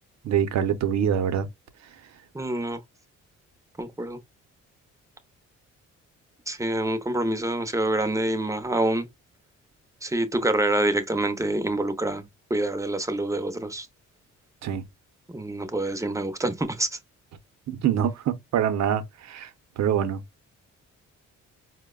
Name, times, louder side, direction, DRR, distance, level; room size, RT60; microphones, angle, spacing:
voice 1, 0.2-1.5 14.6-14.8 17.7-19.5 19.8-20.2, right 9 dB, 65° right, 0.7 m, -25 dB
voice 2, 2.3-2.8 3.8-4.2 6.5-9.1 10.0-13.9 15.3-16.9, right 1 dB, 10° right, 0.6 m, -26 dB
4.5 x 2.1 x 2.2 m
cardioid pair, 90°, 30 cm